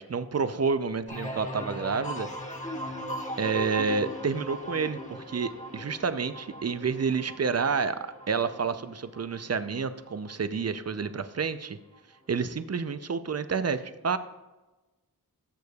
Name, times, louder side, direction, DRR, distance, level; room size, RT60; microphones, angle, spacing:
voice 1, 0.0-2.3 3.4-11.8 12.3-14.2, right 5 dB, 45° right, 12 dB, 0.5 m, -29 dB
sound 1, 1.1-10.6 11.0-11.5, equal, 20° left, 1.4 m, -39 dB
13.0 x 6.8 x 2.3 m, 1.1 s
wide cardioid pair, 55°, 37 cm